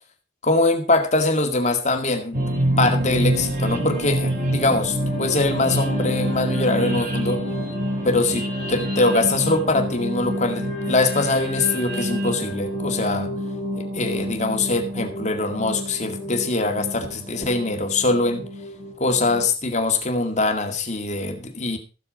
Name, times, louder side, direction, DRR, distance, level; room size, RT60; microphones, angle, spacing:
voice 1, 0.4-2.4 2.8-7.4 8.0-13.3 13.8-18.5 19.0-21.8, left 2 dB, 40° left, 5 dB, 2.1 m, -23 dB
sound 1, 2.3-19.5, equal, 50° right, 4.6 m, -27 dB
14.5 x 8.3 x 5.2 m, 0.33 s
head